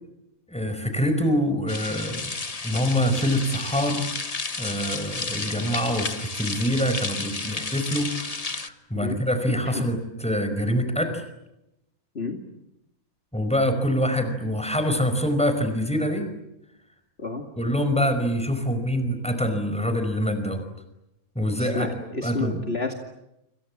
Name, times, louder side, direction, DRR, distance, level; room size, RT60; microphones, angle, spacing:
voice 1, 0.5-2.3 2.6-4.1 4.6-11.2 13.3-16.3 17.6-20.6 21.3-21.9 22.2-22.6, equal, 5° left, 8 dB, 5.1 m, -25 dB
sound 1, 1.7-8.7, left 3 dB, 25° left, 1.2 m, -32 dB
voice 2, 21.6-22.9, left 3 dB, 45° left, 3 dB, 2.7 m, -30 dB
29.0 x 27.5 x 7.5 m, 0.87 s
omnidirectional pair, 1.5 m